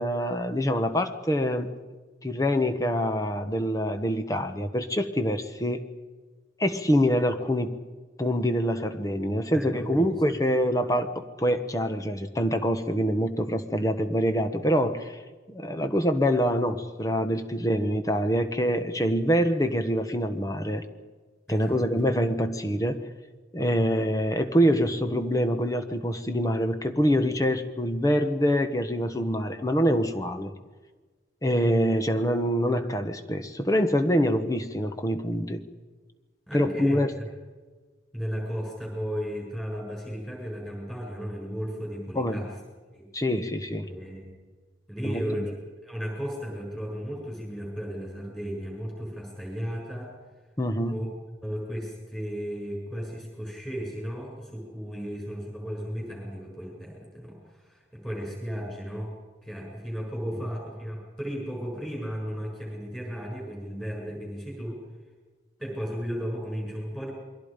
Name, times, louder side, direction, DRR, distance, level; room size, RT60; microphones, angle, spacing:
voice 1, 0.0-1.7 2.2-5.8 6.6-7.8 8.2-15.2 15.5-20.8 21.5-23.0 23.5-30.5 31.4-35.6 36.5-37.1 42.1-42.4 43.1-43.9 45.0-45.5 50.6-51.0, equal, 20° left, 8 dB, 1.2 m, -25 dB
voice 2, 9.5-10.1 21.5-21.8 36.5-37.3 38.1-42.5 42.9-43.1 43.8-44.3 44.9-45.5 45.8-50.1 50.9-51.1 51.4-59.2 59.4-64.8 65.6-67.1, equal, 5° left, -1 dB, 7.1 m, -35 dB
28.5 x 22.5 x 5.2 m, 1.3 s
head